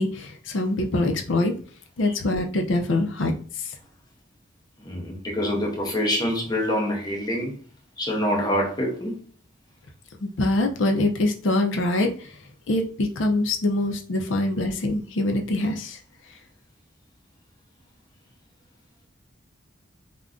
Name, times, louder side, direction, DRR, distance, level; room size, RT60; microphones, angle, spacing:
voice 1, 0.0-1.5 2.0-3.7 10.2-12.3 12.7-16.0, left 2 dB, 70° left, 0.5 m, -24 dB
voice 2, 4.8-7.6 8.0-9.2, equal, 20° left, 0.6 m, -26 dB
2.5 x 2.2 x 3.5 m
head